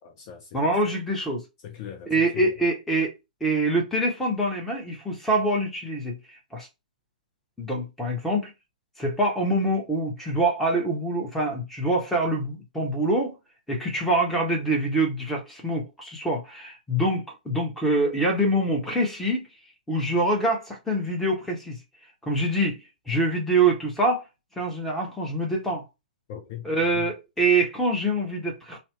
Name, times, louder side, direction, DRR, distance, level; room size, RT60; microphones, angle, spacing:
voice 1, 0.0-0.7 1.6-2.6 26.3-27.1, left 9 dB, 35° left, 0.7 m, -40 dB
voice 2, 0.5-1.4 2.1-3.1 3.4-6.2 6.5-6.7 7.6-8.5 9.0-13.3 13.7-19.5 19.9-21.8 22.2-22.8 23.1-24.2 24.6-25.8 26.6-28.8, right 1 dB, 5° left, 0.9 m, -25 dB
2.7 x 2.0 x 3.0 m
figure-of-eight pair, 115°, 5 cm